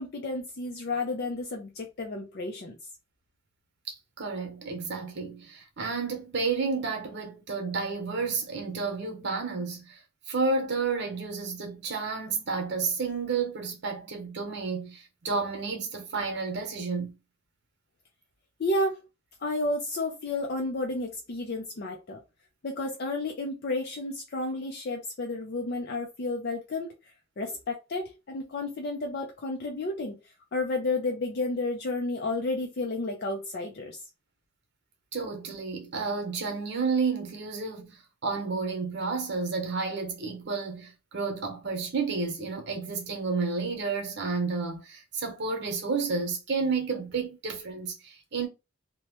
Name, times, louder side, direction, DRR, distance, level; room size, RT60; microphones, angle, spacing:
voice 1, 0.0-2.8 18.6-19.1 19.4-22.2 22.6-34.0, left 2 dB, 50° left, 0.4 m, -32 dB
voice 2, 3.9-10.0 10.3-17.1 35.1-48.5, right 4 dB, 55° right, 0.9 m, -31 dB
2.9 x 2.1 x 3.0 m
head